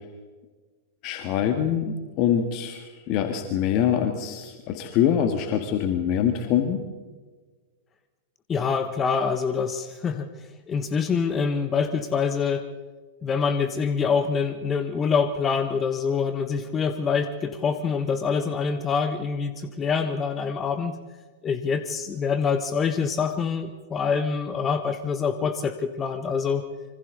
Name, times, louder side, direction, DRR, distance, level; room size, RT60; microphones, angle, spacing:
voice 1, 1.0-6.8, left 9 dB, 45° left, 6 dB, 2.0 m, -24 dB
voice 2, 8.5-10.3 10.7-12.7 13.2-21.0 21.4-26.6, left 6 dB, 25° left, 10 dB, 1.4 m, -25 dB
27.0 x 25.0 x 4.0 m, 1.4 s
figure-of-eight pair, 95°, 0 cm